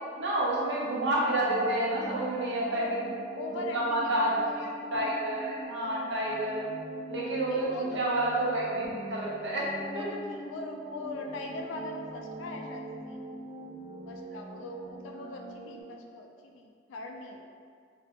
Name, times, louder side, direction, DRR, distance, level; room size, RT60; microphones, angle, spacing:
voice 1, 0.2-3.0 3.5-6.6 7.1-10.1, right 1 dB, 70° right, -5 dB, 0.6 m, -29 dB
sound 1, 1.3-15.8, right 1 dB, 20° right, 0.3 m, -43 dB
voice 2, 2.6-3.0 3.3-4.6 4.9-5.2 7.5-8.0 9.9-13.3 14.1-17.4, left 2 dB, 85° left, 2 dB, 0.3 m, -41 dB
2.4 x 2.1 x 2.9 m, 2.1 s
head